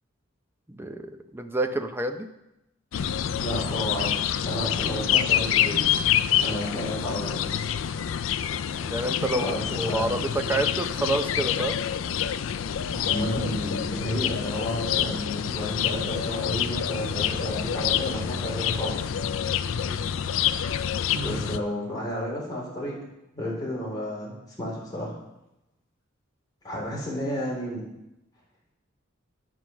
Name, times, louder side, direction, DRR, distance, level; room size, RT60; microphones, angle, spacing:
voice 1, 0.7-2.3 8.7-11.8 19.7-20.1, right 2 dB, 10° right, 6 dB, 0.6 m, -29 dB
sound 1, 2.9-21.6, left 9 dB, 70° left, 0.4 m, -27 dB
voice 2, 3.4-5.8 6.4-7.7 9.3-9.6 9.8-10.1 12.9-19.1 21.1-22.9 23.3-25.1 26.6-27.8, equal, 20° left, -5 dB, 3.7 m, -32 dB
9.4 x 5.8 x 6.2 m, 0.89 s
head